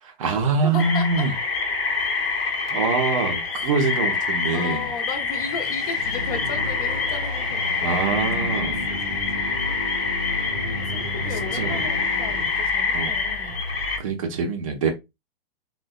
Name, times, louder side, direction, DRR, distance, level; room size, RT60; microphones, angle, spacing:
voice 1, 0.0-1.3 2.7-4.9 7.8-8.8 11.5-11.9 12.9-13.1 14.0-14.9, right 4 dB, 35° right, 0.5 m, -24 dB
voice 2, 0.6-1.3 2.6-2.9 4.5-8.8 9.0-9.5 10.5-13.6, left 5 dB, 40° left, 0.6 m, -36 dB
sound 1, 0.8-14.0, left 4 dB, 70° left, 0.9 m, -26 dB
sound 2, 5.1-12.8, left 1 dB, ahead, 0.7 m, -36 dB
sound 3, 6.0-14.0, left 1 dB, 90° right, 0.5 m, -36 dB
3.3 x 2.1 x 2.2 m
figure-of-eight pair, 115°, 30 cm